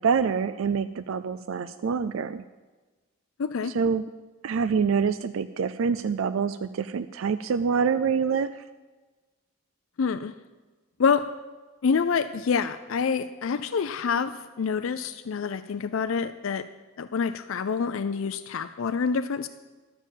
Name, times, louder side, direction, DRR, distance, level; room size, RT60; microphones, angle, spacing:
voice 1, 0.0-2.4 3.7-4.0 4.4-8.6, right 6 dB, 70° right, 13 dB, 0.4 m, -26 dB
voice 2, 3.4-3.7 10.0-10.3 11.0-11.3 11.8-16.6 17.0-19.5, left 5 dB, 70° left, 11 dB, 0.4 m, -27 dB
12.0 x 6.9 x 7.2 m, 1.3 s
head